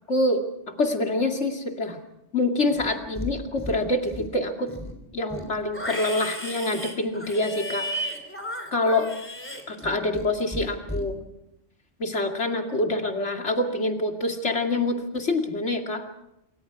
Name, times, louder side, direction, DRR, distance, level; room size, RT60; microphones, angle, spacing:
voice 1, 0.1-0.4 0.8-2.0 2.3-4.7 5.1-7.9 8.7-9.1 9.7-11.2 12.0-16.0, left 2 dB, 70° left, 3 dB, 2.7 m, -26 dB
Livestock farm animals working animals, 2.7-3.3 3.6-4.3 4.7-10.3 10.5-11.0, equal, 10° left, 3.4 m, -34 dB
26.5 x 24.5 x 4.8 m, 0.84 s
omnidirectional pair, 1.2 m